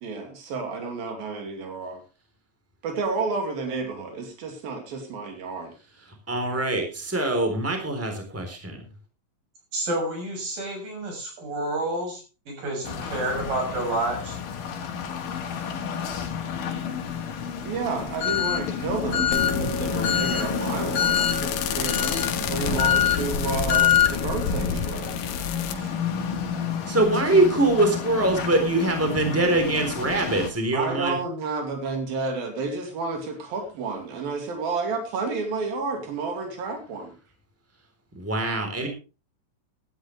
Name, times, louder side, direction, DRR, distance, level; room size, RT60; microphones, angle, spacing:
voice 1, 0.0-2.0 2.8-5.7 17.7-25.1 25.7-25.9 30.7-37.1, right 4 dB, 90° right, 4 dB, 4.4 m, -31 dB
voice 2, 6.3-8.8 26.8-31.2 38.1-38.9, right 2 dB, 5° right, 5 dB, 3.4 m, -23 dB
voice 3, 9.7-12.2 12.5-14.4, right 1 dB, 70° right, 2 dB, 7.8 m, -29 dB
sound 1, 12.8-30.5, left 8 dB, 70° left, 3.4 m, -27 dB
sound 2, 19.3-25.7, left 6 dB, 90° left, 3.1 m, -31 dB
16.5 x 12.5 x 3.3 m, 0.32 s
omnidirectional pair, 4.0 m